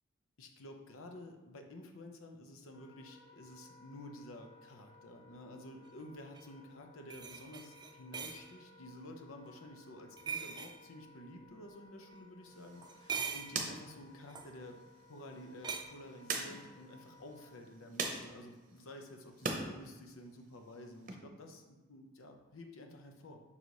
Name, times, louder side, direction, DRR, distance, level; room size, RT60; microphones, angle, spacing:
voice 1, 0.4-14.8 15.1-23.4, left 1 dB, 90° left, 4 dB, 0.8 m, -51 dB
Wind instrument woodwind instrument, 2.7-17.6, left 2 dB, 55° left, 1.0 m, -61 dB
sound 1, 6.3-6.4 7.1-8.4 10.2-10.8 12.8-13.6 14.3-14.5 15.6-15.8, right 6 dB, 20° right, 0.4 m, -41 dB
sound 2, 12.4-19.6 20.0-21.1, right 4 dB, 40° right, 0.7 m, -44 dB
5.6 x 4.0 x 4.7 m, 1.2 s
head